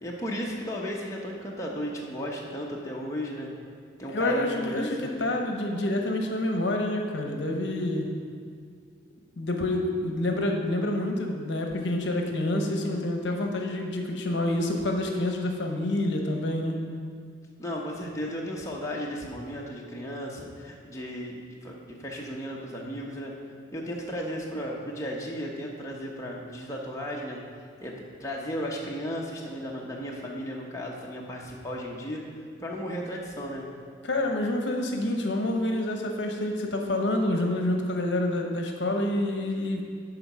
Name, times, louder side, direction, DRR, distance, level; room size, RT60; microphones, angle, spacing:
voice 1, 0.0-3.5 4.0-4.9 5.2-5.4 17.6-21.4 21.6-23.3 23.7-27.4 27.8-32.2 32.6-33.7, equal, 15° left, -3 dB, 0.8 m, -35 dB
voice 2, 4.1-8.1 9.4-16.8 34.0-39.8, left 1 dB, 65° left, 3 dB, 0.8 m, -28 dB
11.0 x 4.0 x 5.5 m, 2.1 s
head